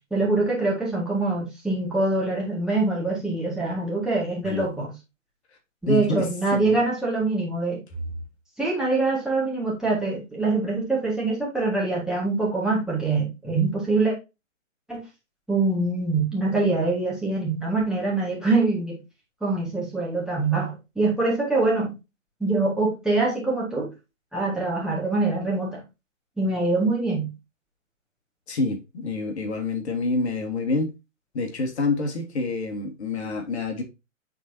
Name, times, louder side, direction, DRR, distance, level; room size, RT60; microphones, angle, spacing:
voice 1, 0.1-4.9 5.8-7.8 8.6-14.1 14.9-15.0 15.5-19.0 19.4-22.0 22.4-23.9 24.3-25.8 26.4-27.3, right 3 dB, ahead, 1.6 m, -24 dB
voice 2, 5.8-6.3 6.5-6.8 28.5-30.9 31.3-33.8, left 3 dB, 55° left, 1.8 m, -27 dB
9.0 x 4.0 x 2.7 m
figure-of-eight pair, 135°, 40 cm